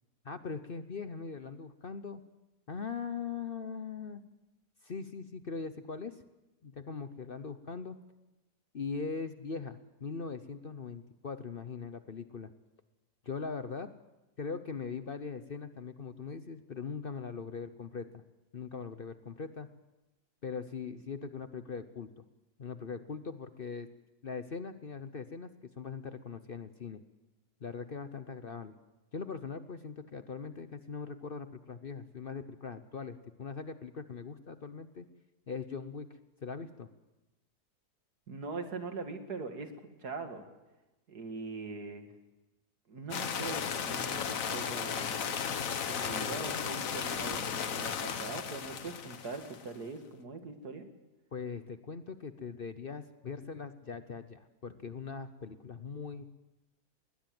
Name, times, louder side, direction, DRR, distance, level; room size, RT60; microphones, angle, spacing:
voice 1, 0.2-2.2 2.7-4.2 4.8-6.2 6.6-8.0 8.7-12.5 13.2-13.9 14.4-18.2 18.5-19.7 20.4-22.2 22.6-23.9 24.2-27.0 27.6-28.7 29.1-35.1 35.5-36.9 51.3-56.2, left 5 dB, 45° left, 10 dB, 0.9 m, -41 dB
voice 2, 38.3-39.7 40.0-40.4 41.1-42.1 42.9-45.5 45.9-50.9, right 4 dB, 80° right, 6 dB, 2.7 m, -42 dB
sound 1, 43.1-49.7, left 7 dB, 60° left, 1.4 m, -35 dB
21.0 x 20.0 x 7.7 m, 1.0 s
omnidirectional pair, 1.7 m